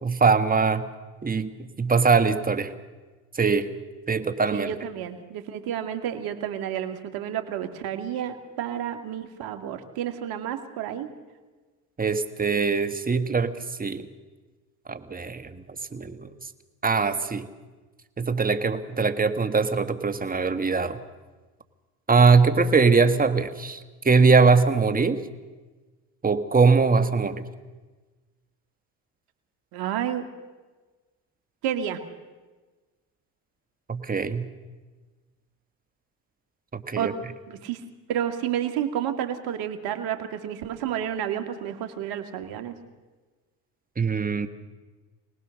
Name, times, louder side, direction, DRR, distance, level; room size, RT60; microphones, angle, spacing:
voice 1, 0.0-0.8 1.2-1.5 1.8-2.7 3.4-3.7 4.1-4.7 12.0-14.1 14.9-15.6 15.9-16.3 16.8-17.5 18.2-21.0 22.1-23.8 24.1-25.2 26.2-27.4 33.9-34.5 36.7-37.1 44.0-44.5, right 4 dB, 20° right, 9 dB, 1.7 m, -21 dB
voice 2, 4.5-11.1 29.7-30.3 31.6-32.0 37.0-37.1 37.5-37.8 38.1-42.7, right 10 dB, 70° right, 7 dB, 2.3 m, -30 dB
26.0 x 19.0 x 6.6 m, 1.3 s
supercardioid pair, 80°, 38 cm